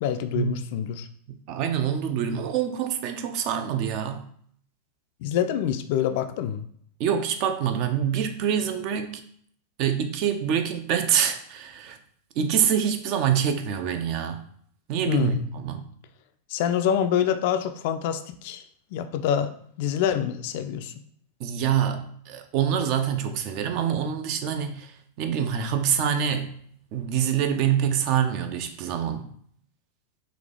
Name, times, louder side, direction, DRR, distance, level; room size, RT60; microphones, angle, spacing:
voice 1, 0.0-1.1 5.2-6.6 15.1-15.5 16.5-18.6 18.9-19.5 19.8-20.9, left 9 dB, 50° left, 9 dB, 0.3 m, -26 dB
voice 2, 1.5-4.2 7.0-9.2 9.8-12.0 12.4-14.4 14.9-15.8 21.4-24.9 25.2-26.6 26.9-29.3, right 8 dB, 45° right, 8 dB, 0.4 m, -25 dB
3.9 x 2.8 x 3.3 m, 0.62 s
figure-of-eight pair, 90°, 0 cm